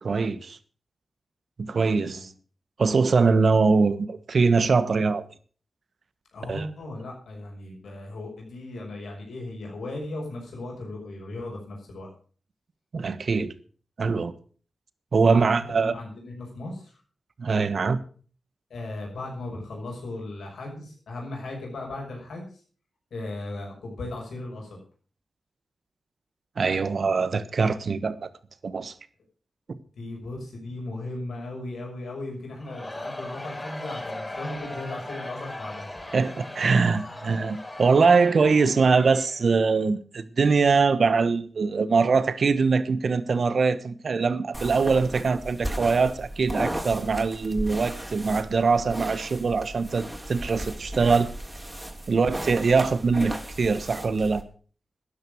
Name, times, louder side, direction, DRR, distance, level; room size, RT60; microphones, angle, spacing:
voice 1, 0.0-0.6 1.6-2.3 2.8-5.2 6.5-6.7 12.9-13.5 14.0-14.3 15.1-15.9 17.4-18.0 26.6-28.3 28.6-28.9 36.1-51.3 52.1-54.4, right 4 dB, 65° right, 1.3 m, -22 dB
voice 2, 6.3-12.1 15.3-15.5 15.8-17.0 18.7-22.6 23.1-24.8 30.0-35.9, left 2 dB, 90° left, 5.9 m, -37 dB
Crowd, 32.6-39.8, left 1 dB, 20° left, 5.7 m, -38 dB
sound 1, 44.5-54.4, right 1 dB, 15° right, 3.2 m, -35 dB
13.0 x 10.5 x 6.3 m
cardioid pair, 50°, 0 cm